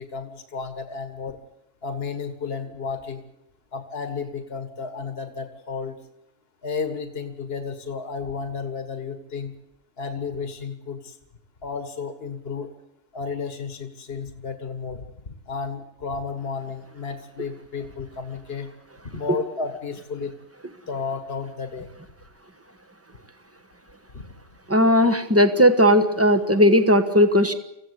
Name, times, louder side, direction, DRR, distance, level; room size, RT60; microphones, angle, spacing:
voice 1, 0.0-1.4 1.8-3.2 3.7-6.0 6.6-9.5 10.0-11.1 11.6-12.7 13.1-18.7 19.1-20.3 20.9-21.9 24.1-24.3, left 5 dB, 55° left, 8 dB, 1.9 m, -32 dB
voice 2, 24.7-27.5, equal, 10° right, 8 dB, 1.4 m, -17 dB
24.5 x 15.5 x 8.3 m, 0.85 s
omnidirectional pair, 1.2 m